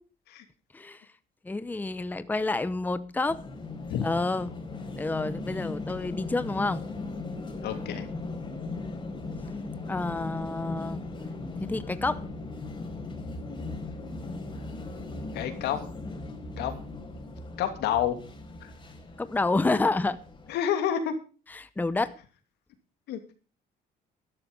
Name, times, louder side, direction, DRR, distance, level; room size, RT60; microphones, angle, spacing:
voice 1, 0.7-1.1 1.4-3.4 4.0-4.5 5.0-6.8 9.9-11.0 11.6-12.2 19.2-20.2 21.5-22.1, left 3 dB, 10° left, 0.8 m, -29 dB
sound 1, 3.3-20.5, left 3 dB, 25° left, 4.1 m, -38 dB
voice 2, 7.6-8.0 15.3-15.8 16.6-16.7 17.6-18.2 18.6-18.7 20.5-21.2 23.1-23.2, left 9 dB, 80° left, 2.7 m, -28 dB
12.5 x 12.5 x 5.4 m
cardioid pair, 110°, 17 cm